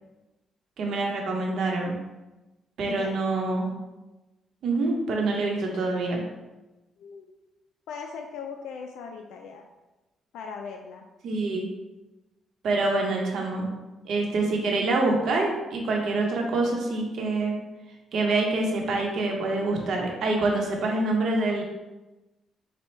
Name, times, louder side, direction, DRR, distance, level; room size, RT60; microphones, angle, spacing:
voice 1, 0.8-2.0 2.8-3.7 4.6-6.2 11.2-11.7 12.6-13.7 14.0-17.5 18.1-21.6, right 2 dB, 70° right, 0 dB, 0.9 m, -26 dB
voice 2, 7.0-7.3 7.9-9.7 10.3-11.0, left 6 dB, 85° left, 3 dB, 0.3 m, -39 dB
4.2 x 2.3 x 4.4 m, 1.1 s
cardioid pair, 90°, 0 cm